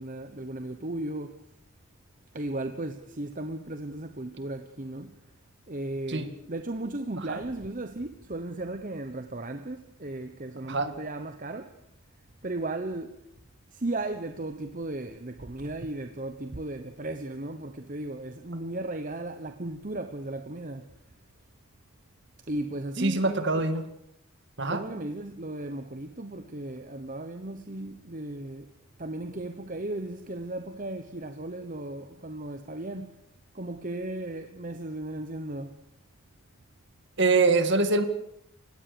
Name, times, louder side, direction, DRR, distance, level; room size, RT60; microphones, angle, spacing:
voice 1, 0.0-1.4 2.3-5.2 5.7-11.8 12.4-13.2 13.7-20.9 22.5-23.6 24.7-28.7 29.0-33.2 33.5-35.8, right 2 dB, 35° right, 1.1 m, -36 dB
voice 2, 23.0-23.9 24.6-24.8 37.2-38.0, right 3 dB, 50° right, 2.2 m, -24 dB
29.5 x 17.0 x 7.0 m
head